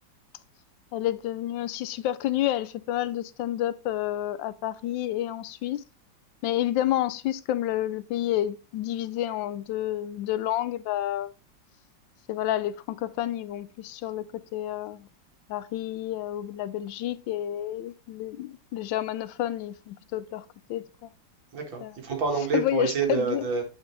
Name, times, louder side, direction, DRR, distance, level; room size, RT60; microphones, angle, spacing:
voice 1, 0.9-5.8 6.4-11.3 12.3-15.1 15.5-21.1 21.8-21.9 22.5-23.4, left 13 dB, 80° left, 1.3 m, -30 dB
voice 2, 21.5-23.6, right 4 dB, 85° right, 2.5 m, -27 dB
9.3 x 4.4 x 3.2 m
omnidirectional pair, 2.1 m